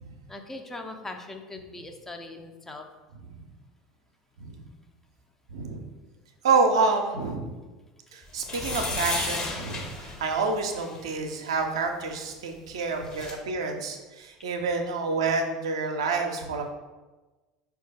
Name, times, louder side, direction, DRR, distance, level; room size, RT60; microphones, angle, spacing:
voice 1, 0.3-2.9, left 2 dB, 10° left, 3 dB, 0.4 m, -40 dB
voice 2, 5.5-5.8 6.4-7.4 8.1-16.7, right 4 dB, 65° right, 4 dB, 0.5 m, -28 dB
sound 1, 8.4-11.0 12.7-12.8 12.9-13.3, left 3 dB, 35° left, 0.8 m, -33 dB
4.3 x 2.3 x 4.2 m, 1.2 s
figure-of-eight pair, 70°, 3 cm